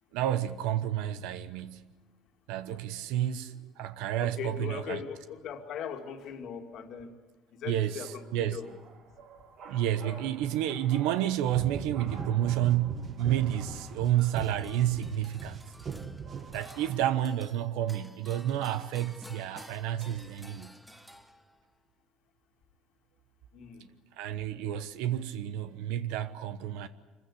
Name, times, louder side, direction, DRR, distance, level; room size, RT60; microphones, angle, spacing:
voice 1, 0.1-1.9 2.5-5.0 7.6-8.6 9.6-15.6 16.5-20.7 24.2-26.9, right 12 dB, 90° right, 1.0 m, -30 dB
voice 2, 4.2-7.1 7.6-8.8 10.0-10.3 23.5-23.9, left 7 dB, 55° left, 2.2 m, -40 dB
sound 1, 8.0-16.9, right 4 dB, 65° right, 5.7 m, -52 dB
sound 2, 11.5-17.0, right 5 dB, 35° right, 1.4 m, -40 dB
sound 3, 14.0-21.7, equal, 5° right, 1.0 m, -53 dB
25.5 x 15.5 x 9.8 m
cardioid pair, 135°, 0 cm